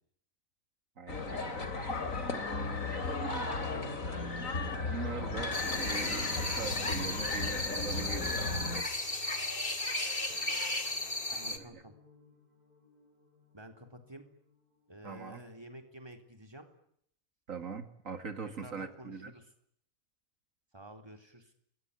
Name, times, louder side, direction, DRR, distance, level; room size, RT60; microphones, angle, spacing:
voice 1, 1.0-3.8 4.1-4.2 4.8-8.5 11.4-11.8 15.0-15.4 17.5-19.3, right 5 dB, 70° right, 8 dB, 2.4 m, -43 dB
sound 1, 1.1-8.8, left 3 dB, 75° left, 3.2 m, -35 dB
voice 2, 3.6-4.0 11.3-11.9 13.5-14.2 14.9-16.7 18.6-19.5 20.7-21.5, right 1 dB, 20° right, 5 dB, 3.7 m, -50 dB
sound 2, 5.5-11.6, left 2 dB, 40° left, 2.8 m, -35 dB
sound 3, 5.8-15.7, right 3 dB, 40° right, 7.5 m, -54 dB
27.0 x 21.0 x 9.9 m, 0.69 s
omnidirectional pair, 1.4 m